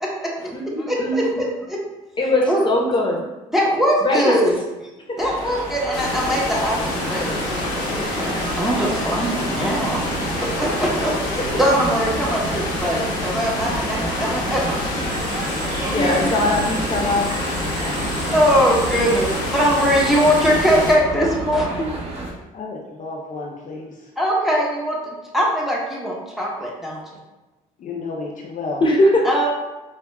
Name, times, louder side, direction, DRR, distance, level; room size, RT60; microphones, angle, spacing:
voice 1, 0.0-1.8 2.5-2.6 3.5-4.5 5.2-10.0 10.6-14.8 15.4-16.2 18.3-21.8 24.2-27.0 29.2-29.5, equal, ahead, -4 dB, 1.0 m, -21 dB
voice 2, 0.5-1.3 2.2-3.2 4.0-4.4 5.1-5.2 15.9-17.3 21.8-21.9 28.8-29.3, left 1 dB, 30° left, -1 dB, 0.9 m, -20 dB
sound 1, 5.2-22.3, right 2 dB, 40° right, 1.1 m, -31 dB
sound 2, 5.9-20.9, left 2 dB, 80° left, 0.9 m, -27 dB
sound 3, 15.1-20.5, right 6 dB, 65° right, 0.5 m, -37 dB
voice 3, 22.5-24.1 27.8-28.8, left 3 dB, 50° left, -1 dB, 0.6 m, -32 dB
4.7 x 2.4 x 2.3 m, 1.1 s
supercardioid pair, 75°, 16 cm